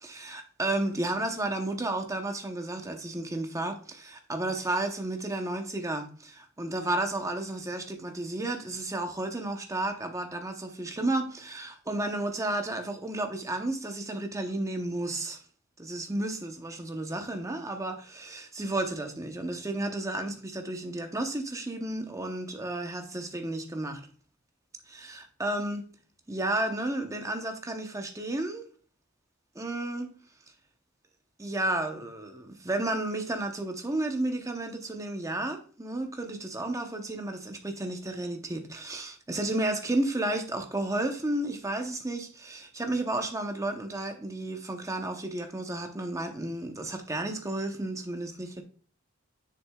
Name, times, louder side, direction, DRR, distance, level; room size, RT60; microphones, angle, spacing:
voice 1, 0.0-15.4 15.8-24.0 24.9-25.9 26.3-28.6 29.5-30.1 31.4-48.6, right 2 dB, 15° right, 0.8 m, -32 dB
7.7 x 6.5 x 2.3 m
head